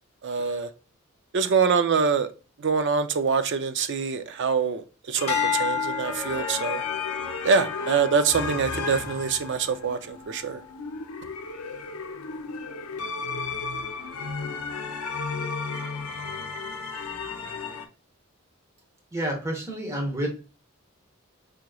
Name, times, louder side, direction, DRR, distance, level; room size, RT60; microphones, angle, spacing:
voice 1, 0.2-0.7 1.3-2.3 2.6-6.8 7.4-10.6, right 5 dB, 55° right, 0.4 m, -25 dB
sound 1, 5.2-17.9, left 4 dB, 75° left, 0.6 m, -34 dB
sound 2, 5.3-9.7 10.3-10.7, left 7 dB, 30° left, 1.0 m, -32 dB
voice 2, 19.1-20.3, right 1 dB, 15° right, 1.0 m, -29 dB
4.9 x 3.0 x 2.3 m
head